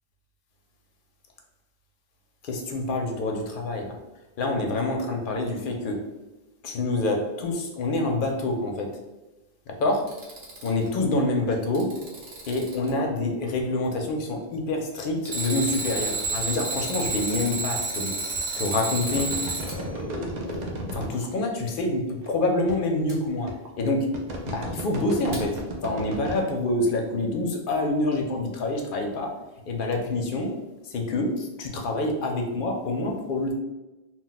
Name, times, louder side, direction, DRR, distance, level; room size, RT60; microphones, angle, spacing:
voice 1, 2.4-4.0 4.4-6.0 6.6-8.9 9.8-10.1 10.6-11.9 12.5-18.1 18.6-19.4 19.7-23.5 23.8-24.1 24.4-29.3 29.7-30.5 30.9-33.5, left 2 dB, 60° left, 2 dB, 0.6 m, -27 dB
Alarm, 9.9-10.9 11.5-12.9 15.2-19.8 23.1-23.2 25.3-25.4, right 3 dB, 70° right, 1.0 m, -30 dB
sound 1, 19.1-21.3 22.2-22.3 22.7-22.8 23.5-23.7 24.1-26.4, right 2 dB, 50° right, 0.6 m, -34 dB
2.3 x 2.1 x 3.9 m, 1.1 s
omnidirectional pair, 1.1 m